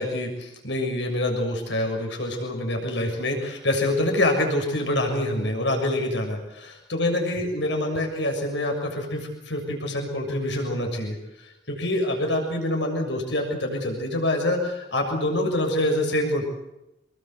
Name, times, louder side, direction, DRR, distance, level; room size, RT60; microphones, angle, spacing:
voice 1, 0.0-16.4, left 1 dB, 85° left, 2 dB, 6.9 m, -26 dB
26.5 x 21.5 x 8.0 m, 0.90 s
head